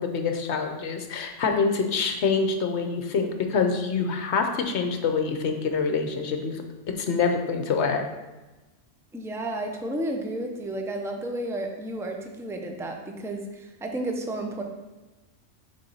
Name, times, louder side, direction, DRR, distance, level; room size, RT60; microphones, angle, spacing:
voice 1, 0.0-6.6 7.0-8.0, left 5 dB, 60° left, 5 dB, 1.0 m, -26 dB
voice 2, 9.1-14.6, right 1 dB, 5° right, 3 dB, 0.3 m, -32 dB
6.8 x 3.7 x 5.5 m, 1.1 s
omnidirectional pair, 1.3 m